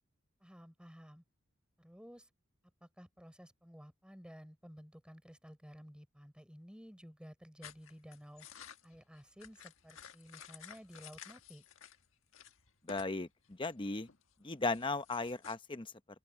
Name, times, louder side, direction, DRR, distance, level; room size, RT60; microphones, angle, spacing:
voice 1, 0.4-1.2 1.8-2.3 2.8-8.5 8.8-11.6, equal, 5° right, 6.7 m, -54 dB
sound 1, 7.6-12.0 12.3-13.2 13.4-15.5, left 8 dB, 75° left, 1.6 m, -54 dB
voice 2, 12.8-14.1 14.4-15.9, left 3 dB, 25° left, 0.9 m, -36 dB
open air
head